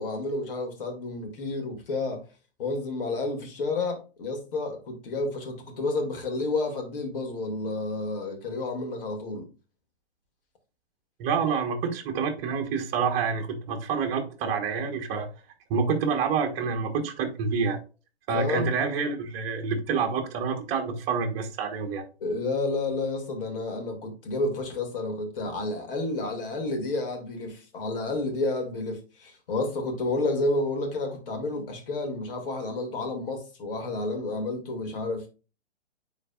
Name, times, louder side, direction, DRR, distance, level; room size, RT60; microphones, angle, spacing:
voice 1, 0.0-2.2 2.6-9.5 18.3-18.7 22.2-35.3, left 2 dB, 55° left, 2.4 m, -30 dB
voice 2, 11.2-15.3 15.7-17.8 18.3-22.0, right 5 dB, 30° right, 1.2 m, -27 dB
9.7 x 4.1 x 2.4 m
hypercardioid pair, 125°, 32 cm